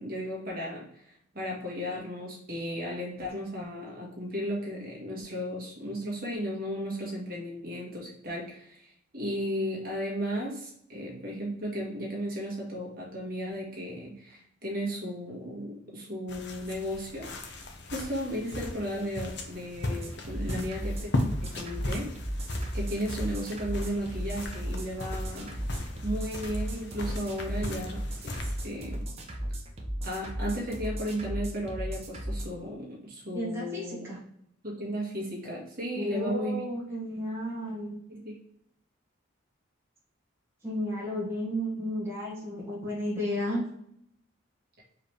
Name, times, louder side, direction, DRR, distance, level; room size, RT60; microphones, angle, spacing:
voice 1, 0.0-17.3 17.9-21.1 21.4-22.1 22.7-25.6 26.0-29.1 30.0-34.1 34.6-36.6 38.1-38.3, equal, 45° right, -3 dB, 1.5 m, -35 dB
sound 1, 16.3-29.0, left 1 dB, 55° left, 0.7 m, -37 dB
sound 2, 20.0-32.5, equal, 30° right, 0.7 m, -35 dB
voice 2, 33.3-34.2 35.9-38.0 40.6-43.6, equal, 10° right, -7 dB, 1.4 m, -33 dB
4.7 x 3.3 x 3.2 m, 0.70 s
head